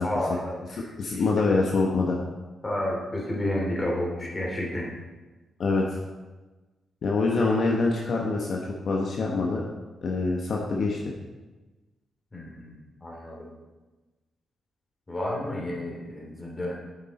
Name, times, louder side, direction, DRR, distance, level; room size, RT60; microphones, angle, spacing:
voice 1, 0.0-0.9 1.1-1.4 2.6-4.9 12.3-13.5 15.1-16.7, left 1 dB, 20° left, -2 dB, 2.9 m, -31 dB
voice 2, 1.0-2.2 5.6-5.8 7.0-8.6 8.9-9.6 10.0-11.0, left 3 dB, 60° left, -1 dB, 1.2 m, -24 dB
9.6 x 7.3 x 4.2 m, 1.2 s
cardioid pair, 95°, 0 cm